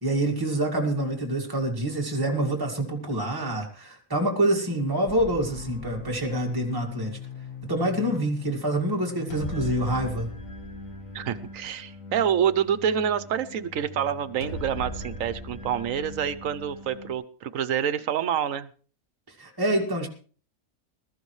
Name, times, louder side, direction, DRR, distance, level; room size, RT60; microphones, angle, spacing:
voice 1, 0.0-7.2 7.6-10.3 19.3-20.1, right 1 dB, 15° right, -1 dB, 2.1 m, -26 dB
sound 1, 5.1-17.1, left 2 dB, 75° left, 2.2 m, -39 dB
voice 2, 11.1-18.7, right 8 dB, 75° right, 13 dB, 1.2 m, -27 dB
20.5 x 13.0 x 3.2 m, 0.41 s
omnidirectional pair, 1.4 m